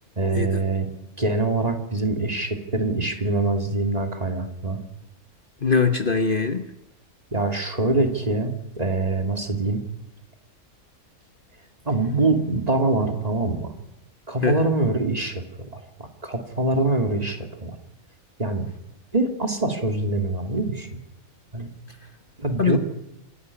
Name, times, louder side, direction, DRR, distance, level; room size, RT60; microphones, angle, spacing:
voice 1, 0.2-0.9 1.2-4.8 7.3-9.8 11.9-13.7 14.3-15.4 15.7-15.8 16.2-17.7 18.4-18.6 19.1-20.9 21.5-21.7 22.4-22.8, right 2 dB, 25° right, 5 dB, 2.6 m, -24 dB
voice 2, 5.6-6.6 14.4-14.7 22.6-22.8, left 5 dB, 40° left, 8 dB, 1.2 m, -22 dB
27.0 x 11.5 x 9.9 m, 0.89 s
omnidirectional pair, 1.5 m